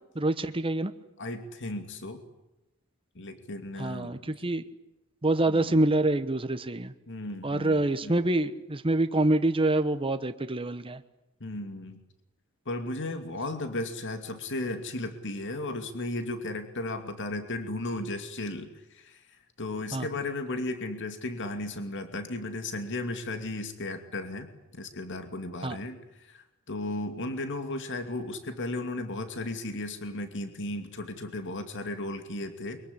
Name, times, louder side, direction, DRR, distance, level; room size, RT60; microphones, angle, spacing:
voice 1, 0.1-0.9 3.8-4.6 5.2-6.9 7.4-11.0 19.9-20.1 25.6-25.8, right 2 dB, 25° right, 9 dB, 1.1 m, -26 dB
voice 2, 1.2-2.2 3.1-4.4 5.5-5.7 7.1-8.2 11.4-12.0 12.7-19.2 19.6-32.8, left 2 dB, 55° left, 8 dB, 2.5 m, -35 dB
23.5 x 23.0 x 9.9 m, 0.91 s
head